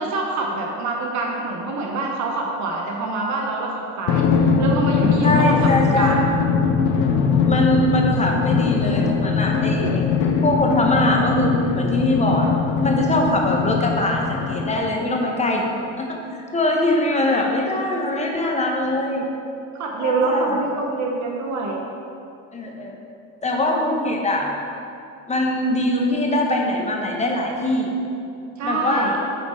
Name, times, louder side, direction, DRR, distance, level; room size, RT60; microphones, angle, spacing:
voice 1, 0.0-4.2 4.6-6.3 17.3-17.4 19.7-21.8 28.6-29.1, right 3 dB, 55° right, -1 dB, 1.0 m, -25 dB
Drum, 4.1-15.1, left 5 dB, 75° left, 0.7 m, -21 dB
voice 2, 5.2-6.2 7.4-10.0 10.4-12.5 12.8-15.7 16.0-19.2 20.0-20.6 22.5-22.9 23.4-24.5 25.3-27.9 28.6-29.2, left 1 dB, 20° left, 0 dB, 1.2 m, -22 dB
8.2 x 4.3 x 4.5 m, 2.6 s
supercardioid pair, 90°, 33 cm